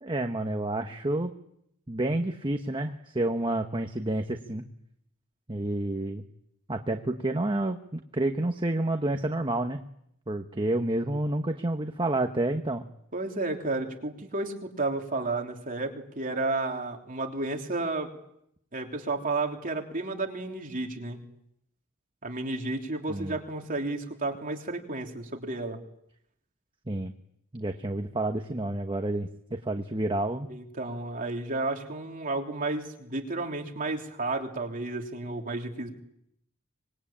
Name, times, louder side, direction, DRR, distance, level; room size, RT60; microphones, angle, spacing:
voice 1, 0.0-1.3 1.9-4.6 5.5-6.2 6.7-9.8 10.3-12.8 23.1-23.4 26.9-27.1 27.5-30.5, right 1 dB, 20° right, 5 dB, 1.2 m, -29 dB
voice 2, 13.1-18.1 18.7-21.2 22.2-25.8 30.5-35.9, right 2 dB, 40° right, 2 dB, 3.4 m, -32 dB
25.5 x 21.5 x 8.8 m, 0.74 s
head